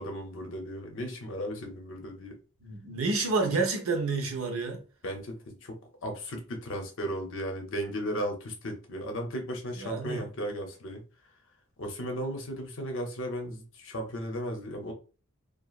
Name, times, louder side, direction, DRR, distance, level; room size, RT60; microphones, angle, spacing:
voice 1, 0.0-2.4 5.0-11.0 11.8-14.9, equal, 60° left, 0.7 m, -35 dB
voice 2, 2.6-4.8 9.8-10.3, right 3 dB, 75° right, 0.8 m, -29 dB
2.9 x 2.4 x 2.4 m
head